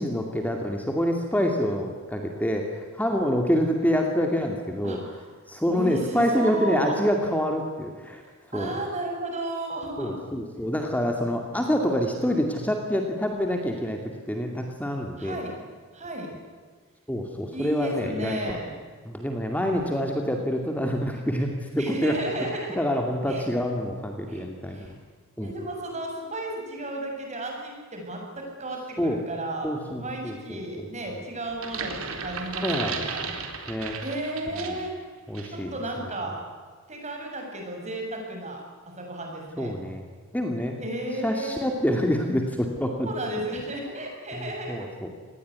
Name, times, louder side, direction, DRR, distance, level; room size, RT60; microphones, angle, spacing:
voice 1, 0.0-5.0 5.5-8.2 8.5-8.7 10.0-14.0 14.3-15.4 17.1-18.6 19.0-22.1 22.7-24.9 25.4-25.5 29.0-29.2 29.6-30.9 32.6-33.0 33.7-34.0 34.6-34.8 35.3-35.7 39.6-40.0 40.3-40.8 41.2-43.1 44.3-45.1, equal, 10° left, 3 dB, 2.4 m, -27 dB
voice 2, 4.8-5.2 5.7-7.0 8.5-10.2 15.2-15.6 15.9-16.3 17.5-18.7 21.8-22.8 23.3-23.4 24.3-24.9 25.4-29.7 29.9-33.3 34.0-34.9 35.5-36.4 36.9-38.6 39.0-39.7 40.8-41.7 43.0-44.9, right 1 dB, 35° right, 1 dB, 7.7 m, -33 dB
sound 1, 31.5-34.9 35.3-35.6, right 5 dB, 90° right, 3.8 m, -34 dB
28.0 x 20.0 x 9.6 m, 1.6 s
head